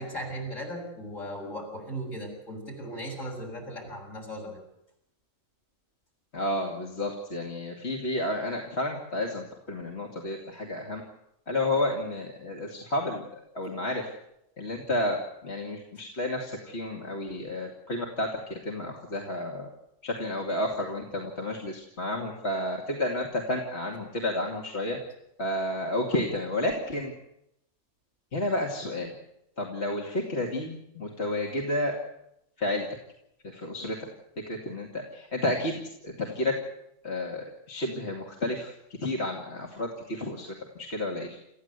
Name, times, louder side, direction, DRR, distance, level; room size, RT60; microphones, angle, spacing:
voice 1, 0.0-4.6, equal, 70° left, 0 dB, 7.4 m, -37 dB
voice 2, 6.3-11.0 11.5-13.3 13.5-14.1 14.6-15.2 15.4-19.7 20.0-25.0 25.4-27.1 28.3-29.1 29.6-32.0 32.6-32.9 33.4-34.1 34.5-36.5 37.0-38.7 39.0-41.4, left 1 dB, 55° left, 0 dB, 2.7 m, -31 dB
28.0 x 15.0 x 8.2 m, 0.81 s
omnidirectional pair, 1.4 m